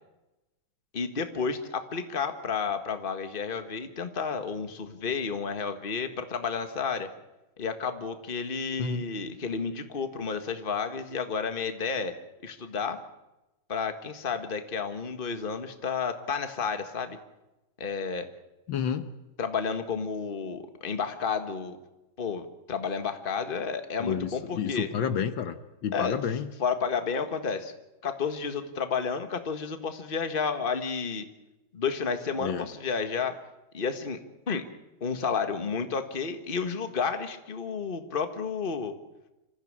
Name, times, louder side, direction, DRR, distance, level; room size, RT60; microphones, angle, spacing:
voice 1, 0.9-7.1 7.6-12.1 12.4-13.0 13.7-17.2 17.8-18.3 19.4-21.8 22.2-24.9 25.9-26.2 26.6-27.7 28.0-31.3 31.7-33.4 33.7-34.2 34.5-34.6 35.0-38.9, left 5 dB, 30° left, 8 dB, 1.6 m, -31 dB
voice 2, 18.7-19.1 24.0-26.5 32.4-32.7, left 7 dB, 70° left, 10 dB, 1.8 m, -30 dB
26.0 x 15.0 x 8.8 m, 1.0 s
omnidirectional pair, 2.2 m